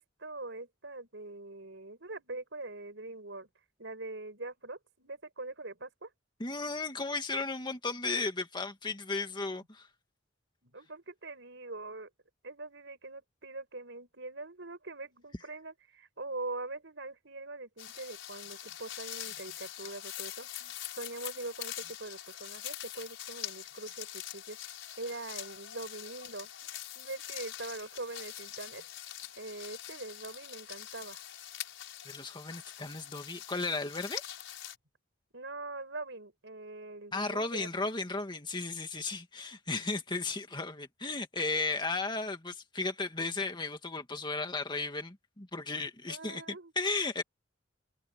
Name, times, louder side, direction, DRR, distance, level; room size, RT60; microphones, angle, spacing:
voice 1, 0.0-3.5 3.8-6.1 10.6-12.1 12.4-24.6 25.0-26.5 27.0-28.9 29.4-31.2 35.3-37.7 46.1-46.7, right 2 dB, 65° right, 5.5 m, -43 dB
voice 2, 6.4-9.9 32.1-34.2 37.1-46.4 46.8-47.2, left 3 dB, 25° left, 2.0 m, -35 dB
sound 1, 17.8-34.8, left 12 dB, 75° left, 5.6 m, -44 dB
head